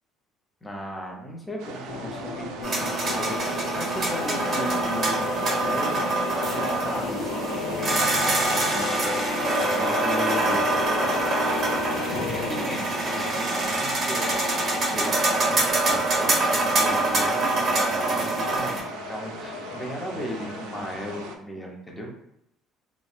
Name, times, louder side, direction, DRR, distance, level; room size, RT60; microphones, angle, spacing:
voice 1, 0.6-5.2 5.6-6.0 6.4-10.6 11.7-14.4 14.7-22.1, equal, 15° left, 0 dB, 0.6 m, -36 dB
sound 1, 1.6-21.3, right 5 dB, 80° right, 0.3 m, -41 dB
sound 2, 1.9-13.6 14.2-21.4, left 4 dB, 90° left, 0.4 m, -34 dB
sound 3, 2.6-18.8, right 2 dB, 30° right, 1.2 m, -25 dB
2.6 x 2.1 x 2.4 m, 0.80 s
cardioid pair, 105°, 0 cm